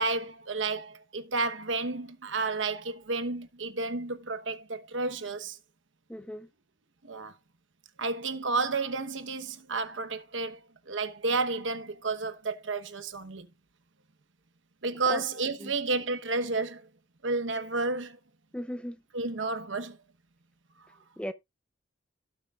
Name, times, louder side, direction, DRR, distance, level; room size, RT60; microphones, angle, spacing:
voice 1, 0.0-5.6 7.0-7.3 8.0-10.6 10.9-13.5 14.8-16.8 17.2-18.2 19.1-20.0, right 3 dB, 90° right, 1.0 m, -31 dB
voice 2, 6.1-6.5 15.1-15.2 15.6-15.7 18.5-19.0 21.2-21.3, equal, 5° left, 0.5 m, -36 dB
16.5 x 5.9 x 2.4 m
head